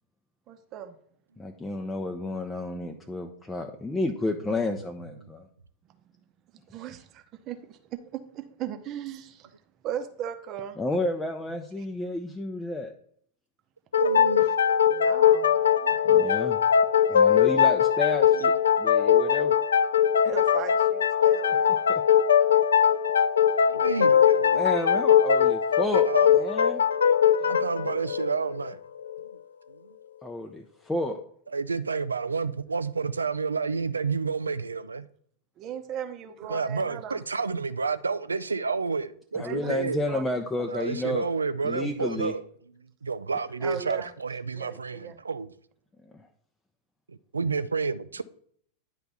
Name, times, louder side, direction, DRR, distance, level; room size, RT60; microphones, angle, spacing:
voice 1, 0.5-1.0 6.7-8.0 8.3-9.5 9.8-10.8 14.4-14.5 14.9-15.5 20.2-21.9 27.4-27.9 35.6-37.2 39.4-39.8 40.1-40.4 40.7-40.8 43.6-44.1 44.5-45.2, right 9 dB, 35° right, 0.9 m, -38 dB
voice 2, 1.4-5.5 10.8-12.9 16.0-16.6 17.1-19.5 21.9-22.0 24.5-26.8 30.2-31.2 39.3-41.3 41.6-42.3, left 2 dB, 10° left, 0.7 m, -31 dB
voice 3, 2.1-3.4 5.2-5.3 13.9-14.5 15.8-16.2 17.3-17.5 18.3-18.5 23.6-24.6 24.9-25.0 25.9-26.3 27.0-27.1 27.5-28.8 29.8-30.0 31.5-35.0 36.5-40.0 40.7-42.4 43.0-45.5 47.1-48.2, right 4 dB, 75° right, 0.4 m, -30 dB
sound 1, 13.9-29.3, left 8 dB, 70° left, 0.3 m, -21 dB
10.0 x 3.4 x 5.5 m
figure-of-eight pair, 90°, 0 cm